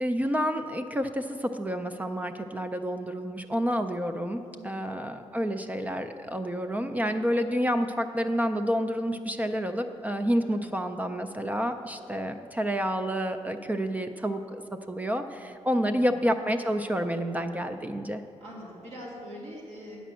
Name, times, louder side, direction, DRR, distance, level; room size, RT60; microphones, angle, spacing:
voice 1, 0.0-14.6 14.9-18.2, equal, 15° right, 7 dB, 0.3 m, -29 dB
voice 2, 4.4-4.9 10.4-10.7 15.7-16.1 18.4-20.0, equal, 85° right, -4 dB, 2.4 m, -43 dB
9.1 x 5.1 x 7.5 m, 2.5 s
wide cardioid pair, 160°, 11 cm